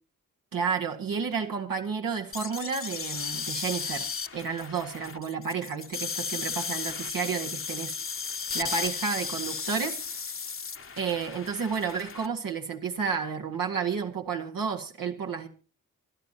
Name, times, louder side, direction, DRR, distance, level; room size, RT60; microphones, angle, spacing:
voice 1, 0.5-4.1 4.3-7.9 8.5-10.0 11.0-15.5, right 6 dB, 90° right, 2 dB, 1.8 m, -31 dB
sound 1, 2.3-12.3, left 5 dB, 40° left, 0.9 m, -35 dB
25.5 x 11.5 x 2.9 m, 0.34 s
cardioid pair, 70°, 33 cm